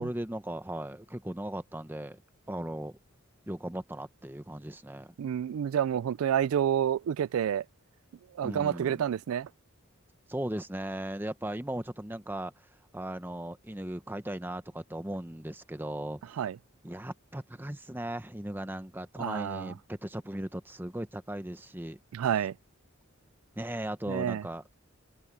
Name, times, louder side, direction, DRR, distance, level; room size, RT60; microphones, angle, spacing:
voice 1, 0.0-2.2 2.5-3.0 3.5-5.1 8.4-9.0 10.3-12.7 12.9-16.4 16.8-22.0 23.6-24.6, right 1 dB, 10° right, 0.8 m, -37 dB
voice 2, 5.2-7.6 8.3-9.5 16.4-16.6 19.2-19.7 22.1-22.5 24.1-24.4, right 9 dB, 85° right, 0.3 m, -29 dB
head